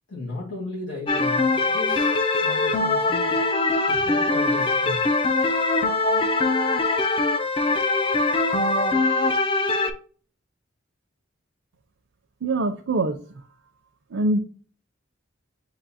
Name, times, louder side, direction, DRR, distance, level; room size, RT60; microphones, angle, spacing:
voice 1, 0.1-3.4 3.9-5.0, left 3 dB, 85° left, -6 dB, 1.8 m, -35 dB
sound 1, 1.1-9.9, left 3 dB, 25° left, 0.4 m, -22 dB
voice 2, 12.4-13.2 14.1-14.4, right 2 dB, 80° right, 4 dB, 0.5 m, -23 dB
6.8 x 2.8 x 2.7 m, 0.42 s
head